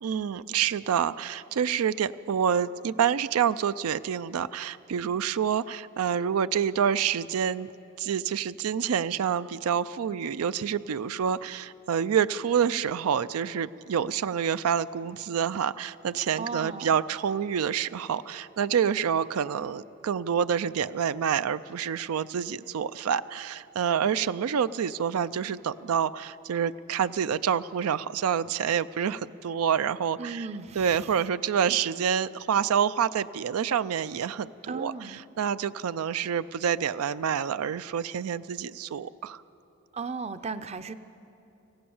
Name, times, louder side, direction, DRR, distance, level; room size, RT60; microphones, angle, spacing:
voice 1, 0.0-7.7 8.0-30.5 30.8-39.4, right 8 dB, 85° right, 15 dB, 0.4 m, -27 dB
voice 2, 16.4-17.0 30.2-31.1 31.7-31.8 34.7-35.2 39.9-40.9, right 4 dB, 30° right, 12 dB, 0.5 m, -36 dB
25.0 x 16.5 x 7.1 m, 2.9 s
head